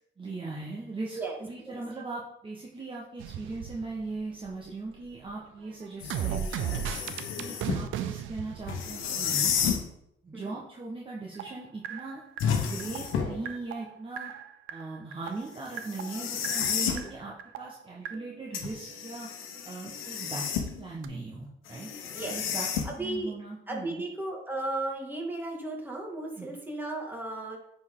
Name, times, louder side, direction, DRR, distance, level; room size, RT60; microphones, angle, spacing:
voice 1, 0.2-6.8 7.3-9.5 10.2-12.2 12.6-14.3 14.7-19.3 19.6-20.4 20.8-21.9 22.3-22.7 23.0-24.0 26.4-26.6, right 3 dB, 25° right, -4 dB, 1.4 m, -39 dB
voice 2, 1.1-1.8 10.3-10.6 16.8-17.1 22.1-22.4 22.8-23.3 23.7-27.6, right 2 dB, 10° right, -1 dB, 2.2 m, -35 dB
sound 1, 3.2-4.7 5.0-9.6 11.3-19.3 21.0-21.1, right 9 dB, 85° right, 0.6 m, -37 dB
sound 2, 6.0-7.9 8.7-9.9 12.4-13.5 15.7-17.1 18.5-20.9 21.7-23.2, left 7 dB, 90° left, 1.1 m, -31 dB
9.5 x 4.5 x 3.9 m, 0.79 s
cardioid pair, 90°, 20 cm